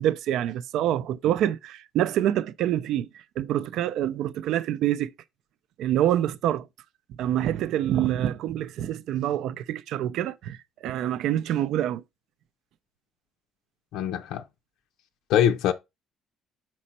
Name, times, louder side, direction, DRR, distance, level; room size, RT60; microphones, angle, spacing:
voice 1, 0.0-5.1 5.8-6.7 7.1-12.0, right 11 dB, 65° right, 0.5 m, -26 dB
voice 2, 13.9-14.4 15.3-15.7, left 10 dB, 75° left, 0.6 m, -23 dB
6.1 x 4.3 x 4.2 m
cardioid pair, 165°, 0 cm